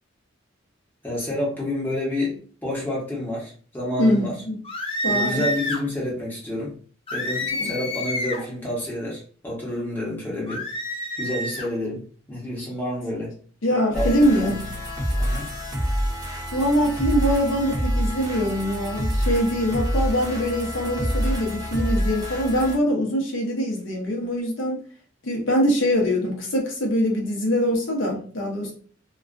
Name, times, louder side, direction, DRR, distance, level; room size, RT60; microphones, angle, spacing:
voice 1, 1.0-4.4 5.1-6.7 7.1-10.7 11.2-12.0 12.3-13.3 13.9-14.1 14.4-14.6 15.2-15.5, left 1 dB, 10° left, 0.9 m, -29 dB
voice 2, 4.0-4.6 5.0-5.4 7.6-7.7 13.6-14.6 16.5-24.8 25.2-28.7, equal, 70° left, 0.7 m, -23 dB
sound 1, 4.6-5.8 7.1-8.5 10.5-11.7, left 1 dB, 30° left, 0.4 m, -28 dB
sound 2, 13.9-22.8, equal, 20° right, 0.6 m, -27 dB
2.3 x 2.2 x 2.4 m
head